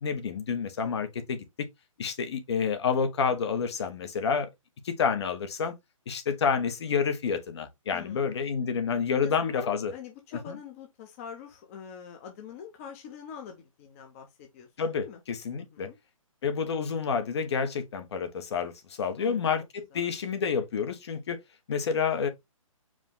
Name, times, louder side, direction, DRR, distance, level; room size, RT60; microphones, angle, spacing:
voice 1, 0.0-1.4 2.0-4.5 4.8-5.7 6.1-9.9 10.5-10.6 14.8-15.9 16.4-18.7 19.0-21.4 21.7-22.3, left 6 dB, 50° left, 0.9 m, -29 dB
voice 2, 7.9-8.5 9.1-14.7 15.0-15.2 15.6-16.0 19.2-19.5 19.9-20.1, left 7 dB, 25° left, 0.7 m, -44 dB
4.9 x 2.2 x 3.7 m
hypercardioid pair, 155°, 18 cm